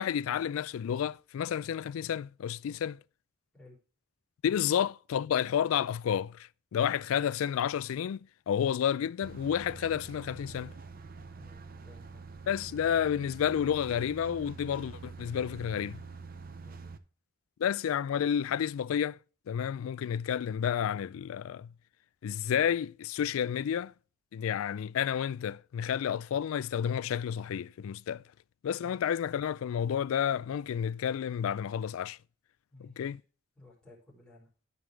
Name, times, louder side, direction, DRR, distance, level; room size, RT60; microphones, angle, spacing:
voice 1, 0.0-3.0 4.4-8.2 8.5-10.7 12.5-16.0 17.6-19.2 19.5-21.7 22.2-23.9 24.3-28.2 28.6-32.2 32.8-33.2, left 8 dB, 75° left, 0.3 m, -30 dB
sound 1, 9.2-17.0, right 4 dB, 45° right, 0.6 m, -46 dB
voice 2, 11.3-12.3 16.6-16.8 28.8-29.0 32.7-33.2 33.6-34.5, left 2 dB, 5° left, 3.7 m, -56 dB
12.0 x 5.4 x 3.3 m
head